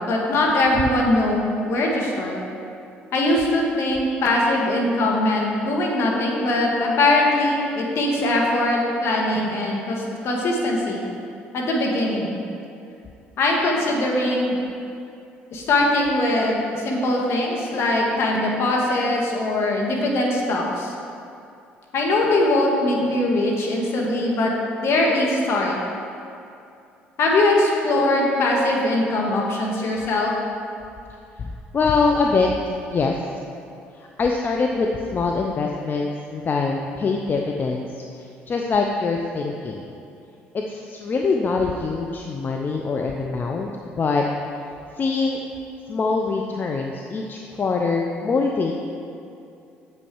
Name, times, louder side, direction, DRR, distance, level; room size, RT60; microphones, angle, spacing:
voice 1, 0.0-1.4 1.6-2.4 3.1-11.0 11.5-12.4 13.4-14.5 15.5-20.9 21.9-24.5 24.8-25.8 27.2-30.3, left 2 dB, 60° left, -1 dB, 1.6 m, -21 dB
voice 2, 31.4-33.2 33.9-39.8 40.5-44.2 45.0-45.4 45.9-48.7, left 4 dB, 40° left, 1 dB, 0.6 m, -24 dB
7.6 x 6.2 x 4.6 m, 2.6 s
supercardioid pair, 65°, 5 cm